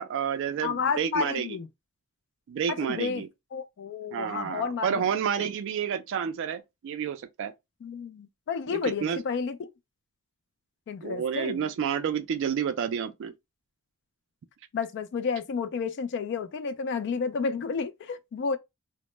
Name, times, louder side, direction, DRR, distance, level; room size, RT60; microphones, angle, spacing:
voice 1, 0.0-1.5 2.5-3.3 4.1-7.5 8.7-9.2 11.0-13.3, right 7 dB, 60° right, 0.3 m, -30 dB
voice 2, 0.6-1.7 2.7-3.2 3.5-5.0 5.4-5.5 7.8-9.7 10.9-11.7 14.7-18.6, left 5 dB, 55° left, 0.3 m, -31 dB
2.0 x 2.0 x 3.0 m
head